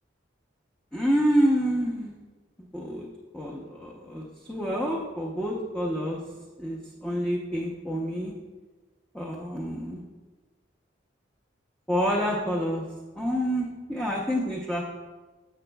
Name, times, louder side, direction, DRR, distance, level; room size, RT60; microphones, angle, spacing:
voice 1, 0.9-2.2 2.7-3.1 3.3-6.2 6.6-8.3 9.1-10.0 11.9-12.8 13.2-14.9, equal, 5° left, -4 dB, 0.7 m, -28 dB
10.0 x 7.8 x 2.3 m, 1.3 s
head